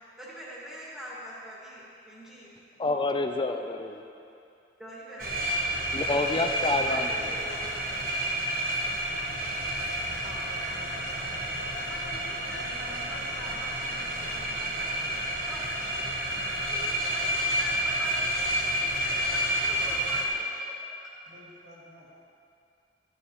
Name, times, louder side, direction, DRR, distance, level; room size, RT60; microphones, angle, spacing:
voice 1, 0.2-2.5 4.8-5.7 6.9-7.8 10.2-20.9, equal, 5° right, -7 dB, 1.9 m, -44 dB
voice 2, 2.8-4.1 5.9-7.3, left 2 dB, 25° left, 5 dB, 0.4 m, -28 dB
sound 1, 5.2-20.3, right 1 dB, 50° right, 1.3 m, -30 dB
voice 3, 16.2-16.7 21.3-22.1, left 1 dB, 75° right, -6 dB, 2.2 m, -53 dB
12.5 x 9.4 x 3.0 m, 2.5 s
head